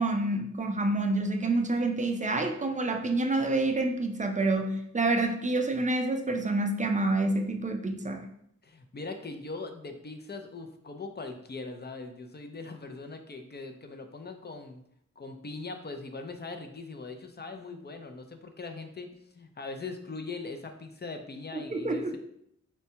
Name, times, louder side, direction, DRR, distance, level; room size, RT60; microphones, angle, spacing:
voice 1, 0.0-8.3 21.5-22.2, right 2 dB, 25° right, 5 dB, 0.4 m, -28 dB
voice 2, 8.6-14.8 15.2-22.2, left 3 dB, 35° left, 6 dB, 0.4 m, -41 dB
4.3 x 2.2 x 2.8 m, 0.73 s
wide cardioid pair, 65°, 31 cm